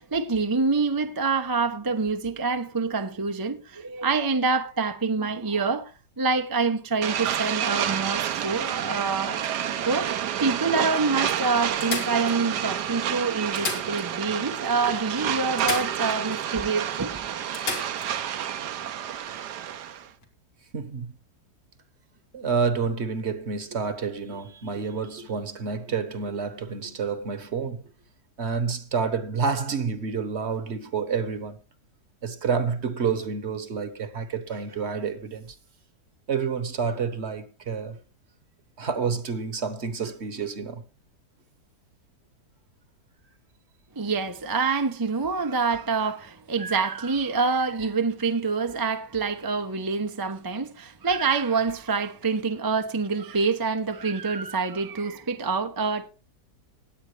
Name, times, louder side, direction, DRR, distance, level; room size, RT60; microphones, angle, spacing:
voice 1, 0.0-9.4 9.9-10.1 10.4-17.4 44.0-56.1, right 4 dB, 30° right, 0.4 m, -26 dB
sound 1, 7.0-20.1, right 9 dB, 75° right, 1.4 m, -29 dB
sound 2, 8.3-9.9 10.6-10.7 11.0-11.1 11.8-12.8 13.4-14.4 14.7-14.8 15.6-16.4 16.8-16.9 17.5-18.1 20.1-20.3, left 3 dB, 85° left, 3.0 m, -35 dB
voice 2, 20.7-21.1 22.3-27.8 28.4-31.6 32.2-35.6 36.3-38.0 38.8-40.8, right 5 dB, 45° right, 1.2 m, -29 dB
19.0 x 8.7 x 3.2 m
omnidirectional pair, 1.8 m